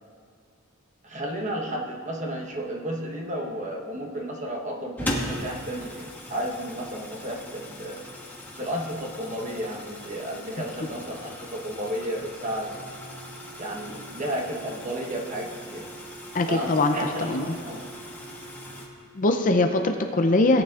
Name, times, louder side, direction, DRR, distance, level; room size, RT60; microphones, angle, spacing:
voice 1, 1.0-8.0 8.6-12.8 13.6-15.9 16.5-17.9, equal, 35° right, 0 dB, 1.1 m, -32 dB
sound 1, 5.0-18.9, left 1 dB, 10° left, 1.2 m, -39 dB
voice 2, 16.3-17.5 19.1-20.6, left 2 dB, 35° left, 5 dB, 0.5 m, -22 dB
17.5 x 9.2 x 2.5 m, 2.3 s
head